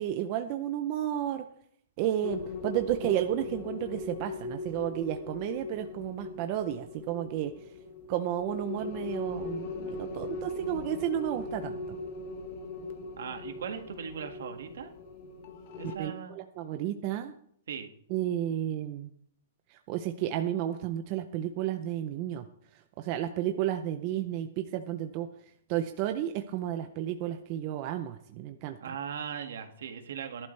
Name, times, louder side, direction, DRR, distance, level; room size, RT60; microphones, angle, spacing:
voice 1, 0.0-1.4 2.0-7.7 8.1-12.0 16.0-17.3 18.1-19.1 19.7-22.5 23.0-25.3 25.7-28.8, right 11 dB, 25° right, 7 dB, 0.6 m, -32 dB
sound 1, 2.2-16.0, left 3 dB, 30° left, 1.4 m, -39 dB
voice 2, 13.2-14.9 15.8-16.4 17.7-17.9 28.8-30.5, right 7 dB, 60° right, 6 dB, 1.9 m, -39 dB
18.5 x 12.0 x 3.3 m, 0.67 s
hypercardioid pair, 180°, 0 cm